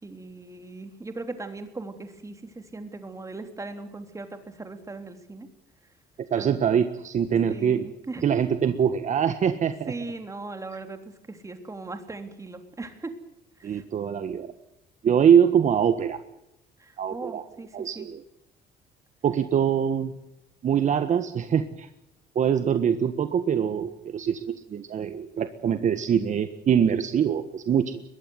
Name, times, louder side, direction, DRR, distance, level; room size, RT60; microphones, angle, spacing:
voice 1, 0.0-5.5 6.4-6.5 7.5-8.2 9.9-13.1 13.6-13.8 16.8-18.1, right 3 dB, 20° right, 7 dB, 3.4 m, -39 dB
voice 2, 6.3-7.9 8.2-9.9 13.6-14.5 15.0-16.2 17.0-17.4 17.7-18.2 19.2-20.1 20.6-21.9 22.3-28.0, right 8 dB, 45° right, 9 dB, 1.5 m, -23 dB
22.0 x 16.0 x 9.6 m, 0.83 s
cardioid pair, 110°, 17 cm